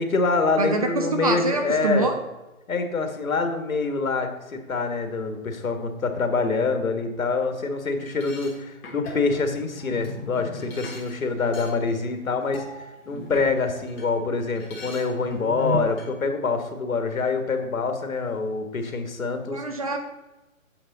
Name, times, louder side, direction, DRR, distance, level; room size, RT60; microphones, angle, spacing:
voice 1, 0.0-2.1 2.7-12.6 13.1-19.6, left 4 dB, 75° left, 7 dB, 1.7 m, -26 dB
voice 2, 0.6-2.2 19.5-20.0, right 2 dB, 25° right, 5 dB, 0.6 m, -25 dB
sound 1, 8.0-14.1 14.4-16.1, left 1 dB, 10° left, 0.8 m, -37 dB
8.6 x 7.1 x 4.0 m, 1.1 s
hypercardioid pair, 155°, 42 cm